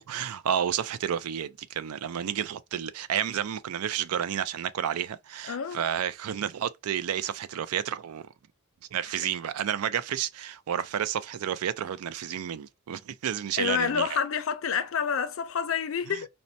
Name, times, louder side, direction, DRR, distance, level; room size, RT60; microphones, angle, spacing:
voice 1, 0.1-8.3 8.9-14.2 16.1-16.2, right 9 dB, 85° right, 0.4 m, -31 dB
voice 2, 5.5-5.8 13.6-16.3, left 7 dB, 65° left, 0.5 m, -28 dB
4.0 x 2.1 x 2.6 m
head